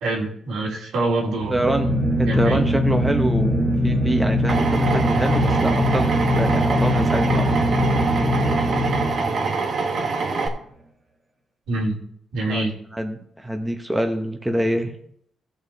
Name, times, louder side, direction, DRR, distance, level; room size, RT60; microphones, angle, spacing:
voice 1, 0.0-2.0 2.2-2.6 11.7-12.0 12.3-12.7, right 2 dB, 85° right, -3 dB, 3.1 m, -25 dB
sound 1, 1.3-9.7, equal, 30° right, 1.4 m, -21 dB
voice 2, 1.5-1.9 2.2-7.7 12.5-12.6 12.9-14.9, right 1 dB, 5° right, 4 dB, 0.8 m, -25 dB
Drill, 4.5-10.5, right 4 dB, 45° right, 1.4 m, -25 dB
17.5 x 6.8 x 2.8 m, 0.67 s
cardioid pair, 165°, 0 cm